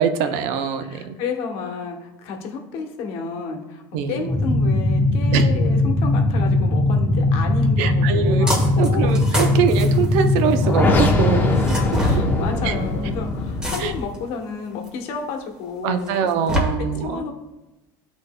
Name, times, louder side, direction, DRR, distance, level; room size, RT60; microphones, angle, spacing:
voice 1, 0.0-1.2 3.9-4.2 5.3-5.5 7.8-8.5 8.8-11.6 12.6-12.7 13.8-13.9 15.8-17.2, right 7 dB, 70° right, 8 dB, 0.6 m, -23 dB
voice 2, 0.8-9.2 12.0-16.2 16.8-17.3, left 5 dB, 60° left, 3 dB, 1.0 m, -31 dB
sound 1, 4.3-14.0, left 2 dB, 20° left, 0.7 m, -20 dB
sound 2, 8.5-8.9 9.1-10.7 11.5-12.2 13.6-14.2 14.8-14.9 16.1-16.6, equal, 10° right, 1.3 m, -25 dB
10.5 x 4.0 x 2.2 m, 0.99 s
supercardioid pair, 135°, 11 cm